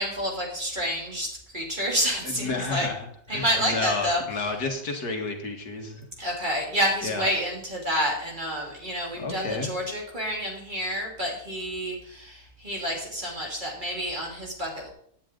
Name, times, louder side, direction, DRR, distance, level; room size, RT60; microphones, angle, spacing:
voice 1, 0.0-2.9 3.3-4.4 6.2-14.9, equal, 30° right, -2 dB, 3.2 m, -29 dB
voice 2, 2.2-6.1 7.0-7.3 9.2-9.7, left 3 dB, 70° left, 3 dB, 2.3 m, -31 dB
17.0 x 9.4 x 3.9 m, 0.66 s
omnidirectional pair, 1.7 m